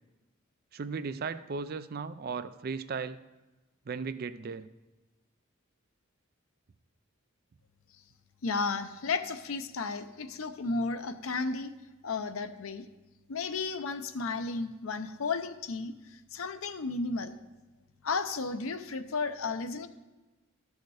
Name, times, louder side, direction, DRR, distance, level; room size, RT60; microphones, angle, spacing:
voice 1, 0.7-3.2 3.9-4.7, right 5 dB, 45° right, 13 dB, 0.4 m, -36 dB
voice 2, 8.4-11.7 12.0-12.8 13.3-17.4 18.0-19.9, left 4 dB, 80° left, 10 dB, 0.6 m, -33 dB
13.0 x 6.5 x 4.8 m, 1.1 s
head